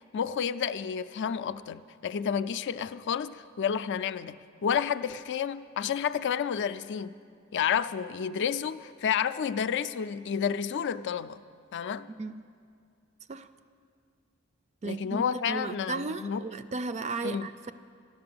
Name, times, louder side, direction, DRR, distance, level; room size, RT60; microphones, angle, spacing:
voice 1, 0.0-7.1 7.5-11.4 11.7-12.1 14.8-16.4 17.2-17.5, left 7 dB, 55° left, 14 dB, 0.4 m, -30 dB
voice 2, 14.8-17.7, right 3 dB, 30° right, 12 dB, 0.3 m, -35 dB
12.5 x 11.5 x 7.8 m, 2.2 s
head